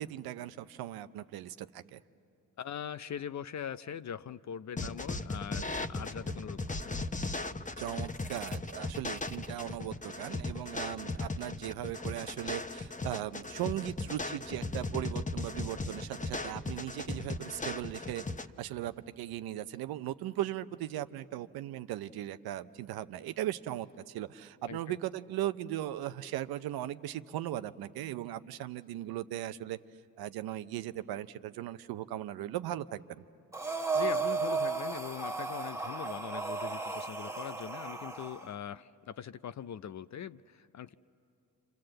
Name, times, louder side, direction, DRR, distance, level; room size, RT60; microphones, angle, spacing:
voice 1, 0.0-2.0 7.8-18.2 18.6-29.8 30.2-33.2, right 13 dB, 85° right, 12 dB, 0.7 m, -38 dB
voice 2, 2.6-7.1 24.7-25.0 33.9-40.9, left 9 dB, 50° left, 13 dB, 0.6 m, -41 dB
sound 1, 4.8-18.5, left 3 dB, 20° left, 1.0 m, -37 dB
Breathing, 33.5-38.5, right 4 dB, 10° right, 1.1 m, -34 dB
28.5 x 27.0 x 7.7 m, 2.5 s
supercardioid pair, 60°, 36 cm